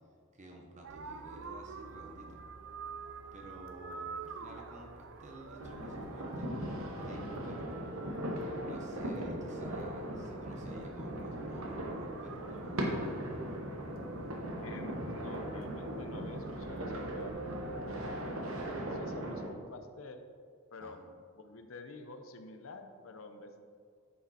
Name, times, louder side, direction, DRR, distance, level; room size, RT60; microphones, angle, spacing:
voice 1, 0.3-2.4 3.3-8.0 8.3-13.2 20.8-21.1, right 1 dB, 35° right, 1 dB, 0.9 m, -52 dB
sound 1, 0.8-18.8, right 3 dB, 65° right, 0.5 m, -48 dB
sound 2, 5.6-19.5, right 1 dB, 80° right, 1.2 m, -39 dB
voice 2, 14.6-17.5 18.1-18.6 18.9-20.3 20.7-21.0 21.4-23.6, left 3 dB, 70° left, 7 dB, 0.6 m, -49 dB
9.7 x 5.1 x 4.2 m, 2.1 s
head